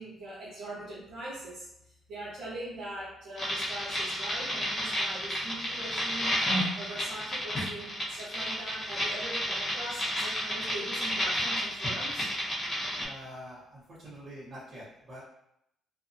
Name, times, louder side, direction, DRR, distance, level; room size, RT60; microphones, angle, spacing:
voice 1, 0.0-1.7 2.1-12.3, right 1 dB, 85° right, -10 dB, 0.8 m, -41 dB
sound 1, 3.4-13.0, equal, 35° left, 1.0 m, -31 dB
voice 2, 12.8-15.2, equal, 45° right, -11 dB, 1.1 m, -46 dB
2.6 x 2.5 x 2.6 m, 0.77 s
cardioid pair, 90°, 0 cm